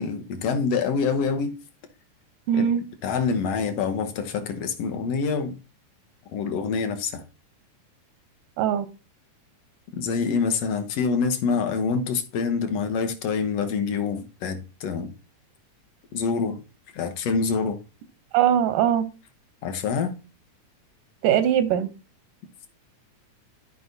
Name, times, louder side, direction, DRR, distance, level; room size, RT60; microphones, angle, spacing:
voice 1, 0.0-1.5 2.5-2.7 3.0-5.6 6.3-7.2 9.9-15.1 16.1-16.6 16.9-17.8 19.6-20.2, left 5 dB, 65° left, 1.7 m, -26 dB
voice 2, 2.5-2.8 8.6-8.9 18.3-19.1 21.2-21.9, right 10 dB, 90° right, 2.5 m, -21 dB
13.0 x 5.0 x 2.7 m
omnidirectional pair, 3.6 m